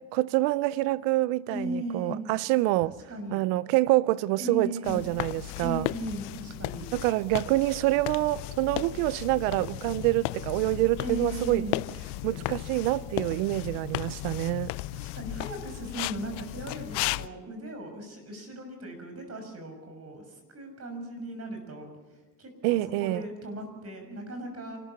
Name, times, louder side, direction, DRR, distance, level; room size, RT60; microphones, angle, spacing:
voice 1, 0.1-2.9 3.3-5.9 6.9-11.7 12.2-14.7 22.6-23.2, right 18 dB, 90° right, 0.7 m, -26 dB
voice 2, 1.5-2.2 3.1-3.4 4.4-5.1 5.6-6.9 11.0-11.8 14.9-20.2 20.5-21.9 22.4-24.8, right 1 dB, 35° right, 6.5 m, -37 dB
sound 1, 4.8-17.3, left 20 dB, 75° left, 0.6 m, -35 dB
27.5 x 14.0 x 7.0 m
supercardioid pair, 100°, 41 cm